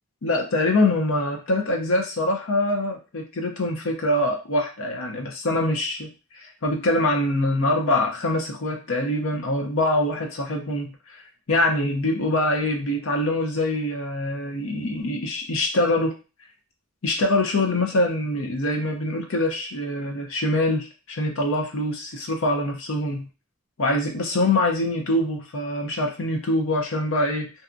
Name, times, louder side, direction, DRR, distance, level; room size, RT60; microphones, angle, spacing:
voice 1, 0.2-6.1 6.3-11.2 11.5-16.2 17.0-23.3 23.8-27.5, left 1 dB, 65° left, 2 dB, 0.6 m, -24 dB
2.7 x 2.3 x 2.5 m, 0.31 s
head